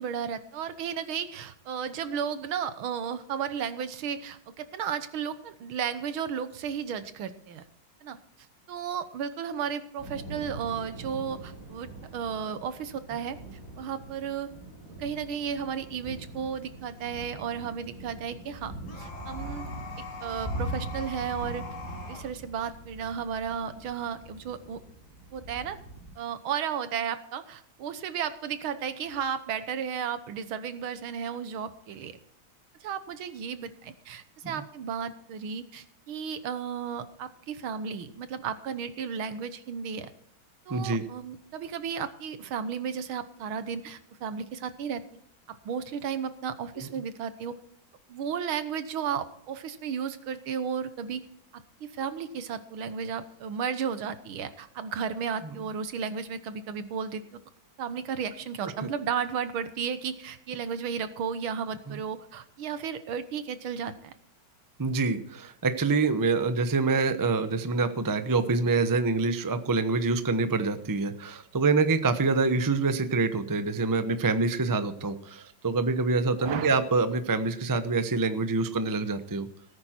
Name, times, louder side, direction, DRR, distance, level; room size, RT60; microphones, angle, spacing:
voice 1, 0.0-7.6 8.0-8.2 8.7-13.4 13.8-14.5 15.0-18.7 19.0-19.7 20.2-21.6 22.1-24.8 25.3-25.8 26.2-32.2 32.8-40.1 40.7-45.0 45.5-47.6 48.1-51.2 51.8-57.2 57.8-64.1 76.4-76.8, right 7 dB, 90° right, 12 dB, 1.9 m, -34 dB
Thunder / Rain, 10.0-26.1, right 1 dB, 10° left, 5.7 m, -42 dB
sound 1, 18.8-22.3, left 4 dB, 55° left, 3.0 m, -42 dB
voice 2, 40.7-41.0 46.8-46.9 55.4-55.5 58.8-58.9 61.9-62.0 64.8-79.5, right 3 dB, 30° right, 10 dB, 0.3 m, -26 dB
18.0 x 9.6 x 4.5 m, 0.68 s
omnidirectional pair, 2.2 m